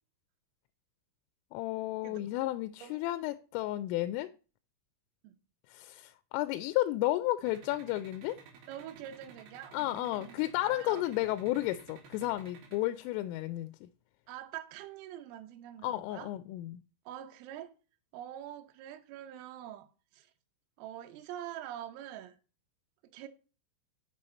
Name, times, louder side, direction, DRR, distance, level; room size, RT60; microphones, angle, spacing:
voice 1, 1.5-4.3 5.7-8.4 9.7-13.9 15.8-16.8, left 16 dB, 85° left, 3.1 m, -32 dB
voice 2, 2.5-3.0 5.2-5.4 8.7-11.3 14.3-16.3 17.1-17.7 18.1-19.9 20.1-20.3 20.8-22.4 23.1-23.3, right 11 dB, 85° right, 3.5 m, -45 dB
sound 1, 7.5-12.8, right 6 dB, 65° right, 4.0 m, -54 dB
7.7 x 6.3 x 4.2 m
omnidirectional pair, 5.8 m